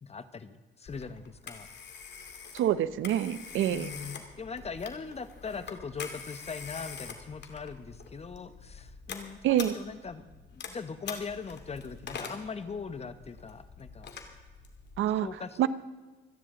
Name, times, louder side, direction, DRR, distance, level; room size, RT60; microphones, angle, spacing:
voice 1, 0.0-1.7 3.7-10.2 10.5-14.1 15.2-15.7, left 5 dB, 30° left, 12 dB, 1.1 m, -40 dB
Telephone, 0.9-15.1, left 6 dB, 60° left, 2.4 m, -45 dB
voice 2, 2.5-3.9 9.4-9.7 15.0-15.3 15.6-15.7, right 11 dB, 80° right, 15 dB, 0.7 m, -26 dB
26.5 x 10.0 x 3.8 m, 1.3 s
cardioid pair, 90°, 20 cm